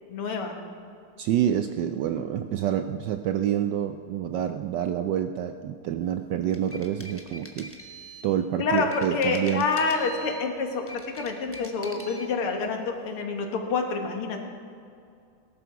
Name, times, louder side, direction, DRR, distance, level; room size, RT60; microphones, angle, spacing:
voice 1, 0.1-0.6 8.6-14.4, left 4 dB, 90° left, 4 dB, 2.4 m, -28 dB
voice 2, 1.2-7.7 8.2-9.6, right 10 dB, 75° right, 8 dB, 1.0 m, -27 dB
sound 1, 6.4-8.3 8.8-10.5 10.8-12.3, equal, 15° left, 0.5 m, -44 dB
18.0 x 12.0 x 4.7 m, 2.4 s
omnidirectional pair, 2.4 m